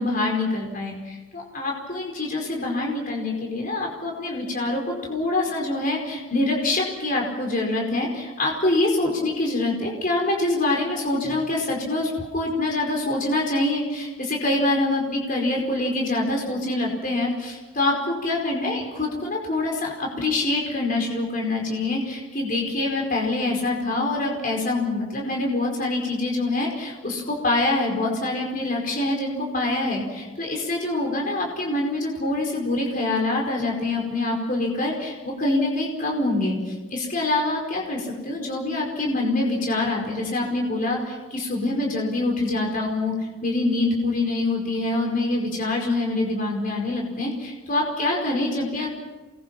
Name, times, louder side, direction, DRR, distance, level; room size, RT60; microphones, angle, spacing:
voice 1, 0.0-48.9, left 2 dB, 40° left, 0 dB, 5.0 m, -25 dB
28.5 x 21.5 x 6.1 m, 1.2 s
head